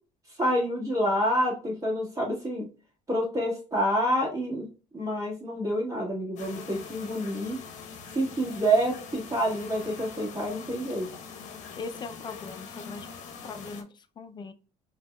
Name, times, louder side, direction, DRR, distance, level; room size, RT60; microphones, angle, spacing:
voice 1, 0.4-2.7 3.1-4.7 4.9-7.6 8.1-11.1, equal, 25° right, -3 dB, 1.7 m, -27 dB
sound 1, 6.4-13.8, left 6 dB, 60° left, 0.8 m, -43 dB
voice 2, 11.8-13.1 13.4-13.9 14.2-14.5, left 4 dB, 30° left, 10 dB, 0.4 m, -39 dB
5.0 x 2.8 x 2.2 m, 0.35 s
cardioid pair, 120°, 14 cm